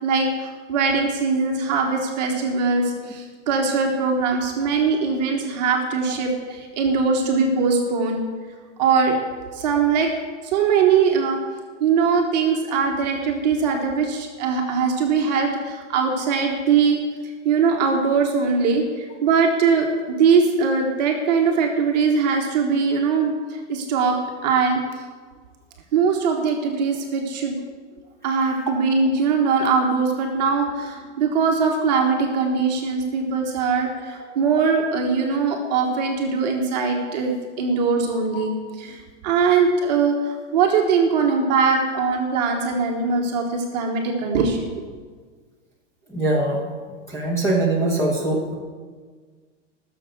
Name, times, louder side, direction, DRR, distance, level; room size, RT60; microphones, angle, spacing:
voice 1, 0.0-8.2 8.8-9.2 9.5-10.1 10.4-11.4 11.8-24.8 25.9-27.6 28.2-44.8, right 5 dB, 35° right, 1 dB, 1.3 m, -21 dB
voice 2, 46.1-46.6 47.1-48.5, right 2 dB, 5° left, -3 dB, 1.5 m, -22 dB
15.0 x 6.8 x 6.6 m, 1.6 s
supercardioid pair, 170°, 36 cm